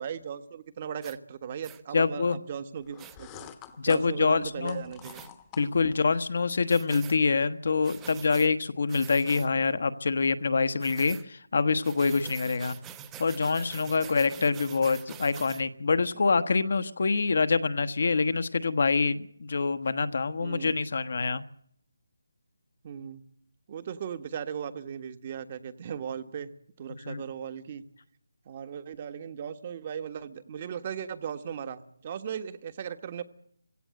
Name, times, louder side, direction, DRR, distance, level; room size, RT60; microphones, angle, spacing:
voice 1, 0.0-3.5 3.8-5.2 16.1-16.3 20.4-20.8 22.8-23.2 23.7-26.5 26.8-27.8 28.4-33.2, right 8 dB, 30° right, 11 dB, 1.5 m, -37 dB
sound 1, 1.0-1.2 1.6-1.8 3.0-3.2 5.0-5.3 6.7-7.2 7.8-8.5 8.9-9.5 10.8-11.2 11.8-15.6, right 10 dB, 10° right, 1.0 m, -45 dB
voice 2, 1.9-2.4 3.8-4.8 5.6-12.8 13.2-21.4 27.0-27.2, left 4 dB, 60° left, 12 dB, 1.3 m, -26 dB
sound 2, 2.8-6.1, left 10 dB, 15° left, 1.2 m, -47 dB
23.0 x 17.0 x 7.8 m, 0.64 s
figure-of-eight pair, 160°, 0 cm